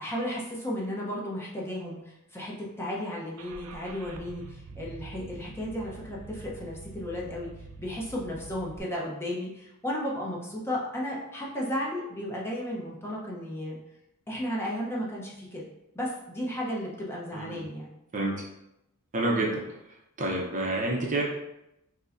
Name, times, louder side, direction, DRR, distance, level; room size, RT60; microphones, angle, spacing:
voice 1, 0.0-7.5 7.8-13.8 14.3-15.7 15.9-17.9, equal, 10° left, -4 dB, 0.7 m, -34 dB
Car / Engine starting, 3.4-8.8, right 3 dB, 75° right, 0.4 m, -45 dB
voice 2, 18.1-18.4 19.1-19.6 20.2-21.2, right 2 dB, 35° right, -2 dB, 0.6 m, -28 dB
5.2 x 2.1 x 2.5 m, 0.86 s
head